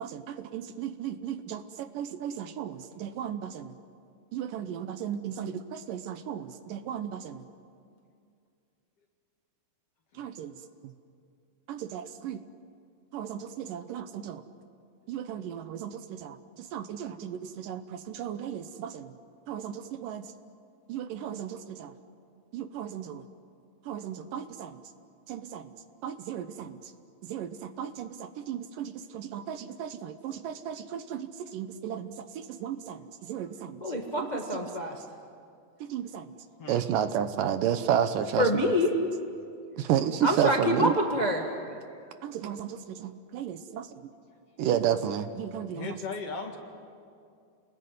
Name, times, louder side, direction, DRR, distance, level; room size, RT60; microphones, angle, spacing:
voice 1, 0.0-3.8 4.3-7.5 10.2-10.5 10.8-10.9 11.7-12.4 13.1-14.4 15.1-19.1 19.5-20.2 20.9-21.9 22.5-23.2 23.9-24.8 25.3-25.7 26.0-26.8 27.2-33.8 34.2-34.6 35.8-36.3 36.7-38.7 39.8-40.9 42.2-43.9 44.6-45.9, right 9 dB, 75° right, 10 dB, 2.4 m, -33 dB
voice 2, 33.8-35.0 38.4-38.9 40.2-41.5, left 1 dB, 25° left, 2 dB, 1.0 m, -26 dB
voice 3, 45.7-46.6, left 4 dB, 45° left, 3 dB, 2.5 m, -37 dB
30.0 x 20.5 x 9.5 m, 2.4 s
omnidirectional pair, 4.2 m